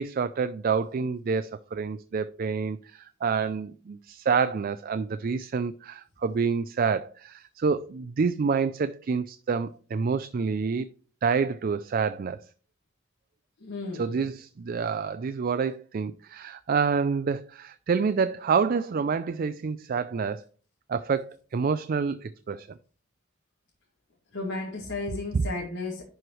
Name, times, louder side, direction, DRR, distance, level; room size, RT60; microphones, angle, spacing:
voice 1, 0.0-10.9 11.2-12.4 13.9-20.4 20.9-22.7 25.3-25.4, right 5 dB, 45° right, 0.4 m, -28 dB
voice 2, 13.6-14.1 24.3-26.0, left 3 dB, 70° left, 1.9 m, -33 dB
11.0 x 4.6 x 3.2 m
head